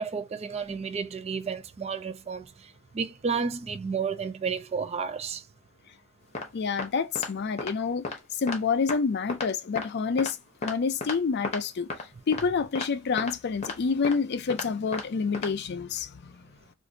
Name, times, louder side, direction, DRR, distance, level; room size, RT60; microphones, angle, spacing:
voice 1, 0.0-2.5 2.9-5.4, right 5 dB, 30° right, 0.3 m, -31 dB
sound 1, 6.3-6.5 6.8-6.9 7.1-7.3 7.6-7.7 8.0-8.2 8.5-8.6 8.9-9.0 9.3-9.5 9.7-9.9 10.2-10.3 10.6-10.7 11.0-11.2 11.4-11.6 11.9-12.0 12.3-12.4 12.7-12.9 13.2-13.3 13.6-13.7 14.0-14.2 14.5-14.7 14.9-15.0 15.3-15.5, left 3 dB, 30° left, 0.8 m, -33 dB
voice 2, 6.5-8.0 8.4-10.4 10.6-11.9 12.3-16.3, left 5 dB, 50° left, 0.4 m, -28 dB
2.5 x 2.5 x 3.8 m
head